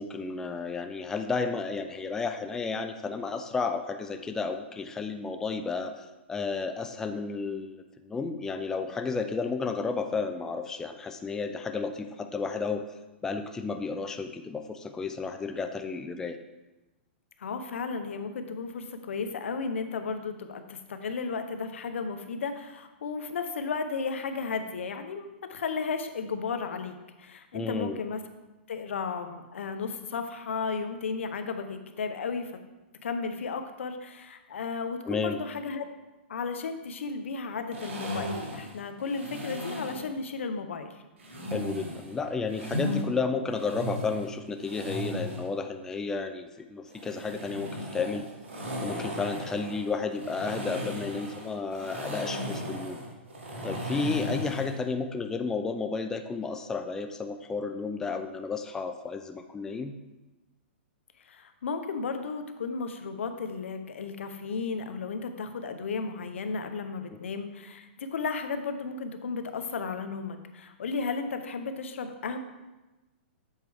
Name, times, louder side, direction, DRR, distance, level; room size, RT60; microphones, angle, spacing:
voice 1, 0.0-16.4 27.5-28.0 35.1-35.4 41.5-48.3 48.8-53.0 53.6-59.9, left 4 dB, 10° left, 6 dB, 0.3 m, -32 dB
voice 2, 17.4-28.2 28.7-32.5 33.0-35.9 36.3-41.0 61.2-72.4, left 5 dB, 80° left, 8 dB, 0.9 m, -34 dB
sound 1, 37.7-40.1 41.2-43.0 43.5-45.5 46.9-54.8, equal, 85° right, 1.9 m, -36 dB
7.5 x 4.6 x 4.8 m, 1.1 s
hypercardioid pair, 145°, 7 cm